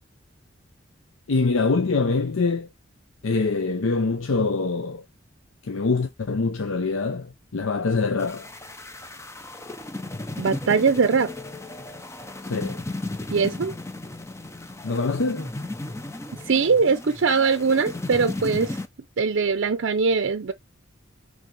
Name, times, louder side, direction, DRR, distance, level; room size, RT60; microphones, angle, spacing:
voice 1, 1.3-2.7 3.2-5.0 5.6-8.5 12.4-12.8 14.8-15.5, left 3 dB, 90° left, 0.6 m, -24 dB
sound 1, 8.2-18.9, left 2 dB, 15° left, 0.7 m, -35 dB
voice 2, 10.4-11.3 13.3-13.7 16.5-18.8 19.2-20.5, right 5 dB, 65° right, 0.5 m, -21 dB
7.5 x 3.4 x 5.2 m
head